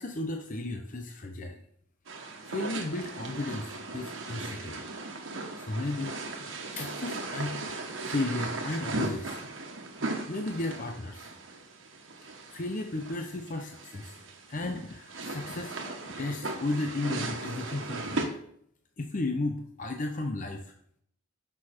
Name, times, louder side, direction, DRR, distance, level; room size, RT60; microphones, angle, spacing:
voice 1, 0.0-1.6 2.5-4.8 5.6-6.4 6.7-7.8 8.1-9.4 10.3-11.3 12.5-14.2 14.5-18.4 19.0-20.6, left 2 dB, 40° left, 3 dB, 0.7 m, -34 dB
sound 1, 2.1-18.3, right 2 dB, 80° right, 1.4 m, -38 dB
9.8 x 6.3 x 4.4 m, 0.68 s
head